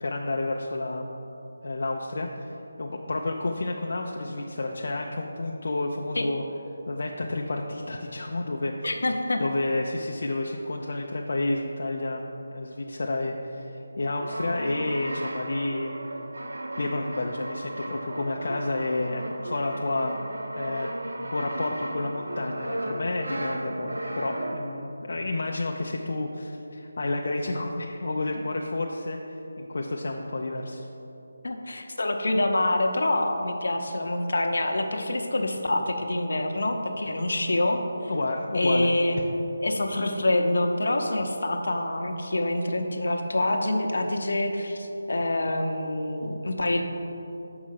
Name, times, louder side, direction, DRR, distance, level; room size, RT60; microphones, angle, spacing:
voice 1, 0.0-1.2 1.6-6.4 6.9-8.7 9.4-15.9 16.8-20.3 20.5-29.2 29.6-30.9 38.1-38.9, left 2 dB, 45° left, 0 dB, 0.4 m, -30 dB
voice 2, 8.8-9.4 31.4-37.8 38.5-39.2 39.6-46.8, left 1 dB, 65° left, 4 dB, 0.8 m, -26 dB
Brass instrument, 14.1-24.9, right 1 dB, 90° right, 0.6 m, -35 dB
6.3 x 4.8 x 5.7 m, 3.0 s
figure-of-eight pair, 175°, 0 cm